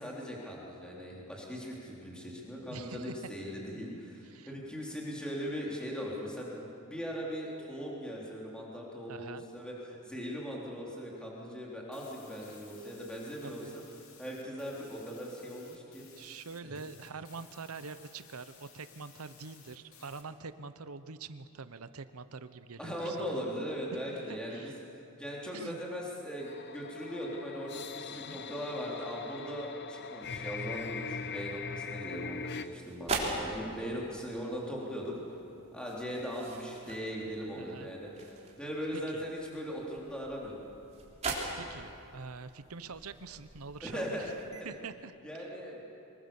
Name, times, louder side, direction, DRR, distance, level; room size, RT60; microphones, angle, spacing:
voice 1, 0.0-13.8 14.2-16.0 16.6-16.7 22.8-35.1 35.7-40.6 43.8-44.3 44.6-44.7 45.2-45.8, equal, 5° left, -4 dB, 3.6 m, -39 dB
voice 2, 2.7-3.2 4.2-4.5 9.1-9.4 13.4-13.8 16.2-23.4 24.1-24.8 25.5-25.8 28.1-28.4 37.5-37.9 38.9-39.2 41.5-44.3 44.6-45.1, right 4 dB, 80° right, 12 dB, 0.9 m, -45 dB
sound 1, 11.9-20.2, left 6 dB, 65° left, 2.8 m, -58 dB
sound 2, 26.4-32.7, left 5 dB, 50° left, 0.8 m, -41 dB
sound 3, 32.1-44.6, right 2 dB, 30° right, 3.6 m, -42 dB
25.0 x 21.5 x 7.2 m, 2.7 s
head